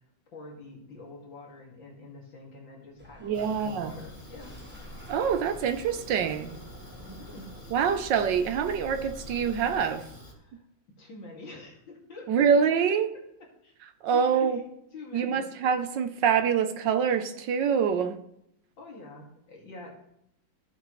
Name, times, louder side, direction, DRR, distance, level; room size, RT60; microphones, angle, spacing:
voice 1, 0.3-4.6 7.0-7.5 10.4-10.7 11.0-12.5 13.6-13.7 14.1-14.6 14.9-15.5 18.8-19.9, left 3 dB, 75° left, -2 dB, 3.0 m, -46 dB
Bus / Engine starting, 3.0-9.7, equal, 10° right, 0.8 m, -48 dB
voice 2, 3.2-3.9 5.1-6.5 7.7-10.1 12.3-13.1 14.0-14.6 15.1-18.2, right 7 dB, 75° right, 9 dB, 1.4 m, -25 dB
Fire, 3.3-10.3, left 1 dB, 25° left, 1.5 m, -48 dB
15.0 x 6.6 x 3.1 m, 0.76 s
omnidirectional pair, 2.1 m